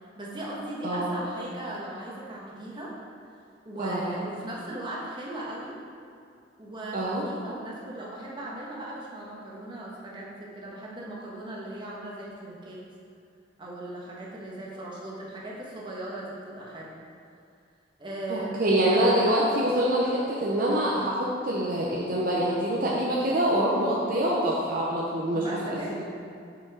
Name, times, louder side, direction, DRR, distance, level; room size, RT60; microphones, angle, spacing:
voice 1, 0.2-2.9 3.6-5.8 6.6-12.8 13.6-16.9 18.0-18.8 25.3-25.9, right 1 dB, 25° right, -5 dB, 1.2 m, -38 dB
voice 2, 0.8-1.2 3.8-4.1 6.9-7.2 18.3-25.4, right 1 dB, 50° right, -4 dB, 0.7 m, -25 dB
5.9 x 5.4 x 4.9 m, 2.4 s
head